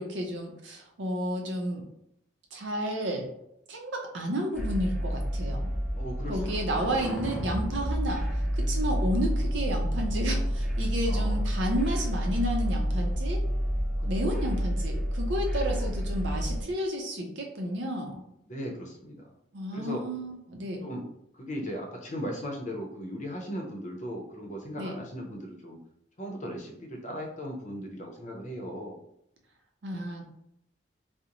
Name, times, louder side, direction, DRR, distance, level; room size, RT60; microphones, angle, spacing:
voice 1, 0.0-1.8 2.5-3.3 3.7-5.7 6.3-13.4 14.1-18.2 19.5-20.9 24.8-24.9 29.8-30.3, equal, 75° right, 3 dB, 0.6 m, -32 dB
sound 1, 4.5-16.6, equal, ahead, 0.6 m, -29 dB
voice 2, 5.9-6.9 11.0-11.5 14.0-14.5 15.7-15.9 18.5-19.3 19.7-20.0 20.8-21.1 21.3-25.8 26.2-29.0, equal, 40° left, 0 dB, 0.6 m, -38 dB
2.5 x 2.0 x 2.9 m, 0.75 s
head